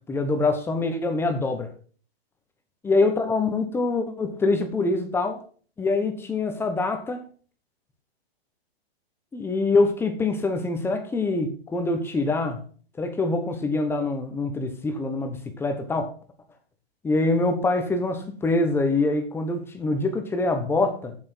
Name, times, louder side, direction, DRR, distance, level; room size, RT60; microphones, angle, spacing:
voice 1, 0.1-1.7 2.8-5.4 5.8-7.3 9.3-12.6 13.0-16.1 17.0-21.2, left 3 dB, 5° left, 1.1 m, -24 dB
7.8 x 7.7 x 6.0 m
hypercardioid pair, 150°, 32 cm